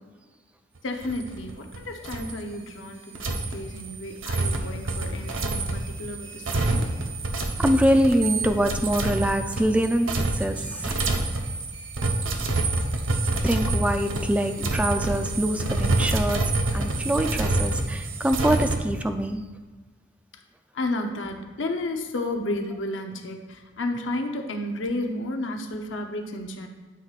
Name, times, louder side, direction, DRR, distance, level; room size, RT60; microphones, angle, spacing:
voice 1, 0.8-6.9 20.7-26.7, left 1 dB, 65° left, 4 dB, 0.7 m, -32 dB
sound 1, 1.0-1.8 2.0-2.4 3.1-18.8, right 2 dB, 75° right, 0.8 m, -27 dB
voice 2, 7.6-11.0 13.4-19.4, equal, 5° right, 7 dB, 0.3 m, -24 dB
12.0 x 6.2 x 2.4 m, 1.4 s
head